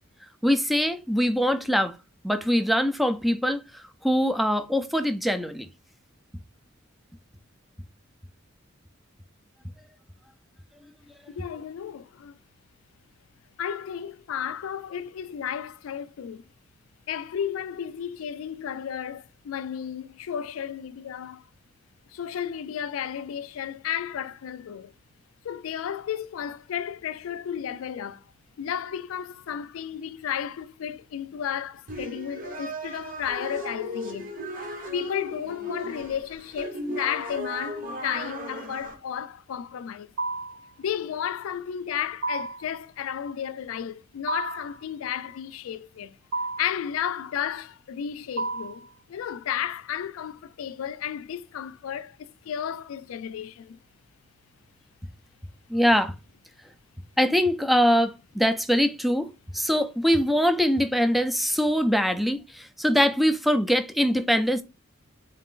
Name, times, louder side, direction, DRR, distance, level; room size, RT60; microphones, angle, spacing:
voice 1, 0.4-1.9 2.2-5.7 55.7-56.1 57.2-59.3 59.5-64.6, equal, ahead, 0.3 m, -23 dB
voice 2, 11.3-12.4 13.6-16.4 17.1-21.4 22.1-24.9 25.4-28.3 28.6-34.3 34.9-40.1 40.8-46.2 46.6-53.8, left 9 dB, 80° left, 0.3 m, -33 dB
sound 1, 31.9-38.9, equal, 45° right, 0.9 m, -36 dB
sound 2, 40.2-40.7 42.2-42.7 44.3-44.8 46.3-46.8 48.4-48.9, right 2 dB, 65° right, 0.5 m, -31 dB
3.8 x 2.4 x 3.7 m
head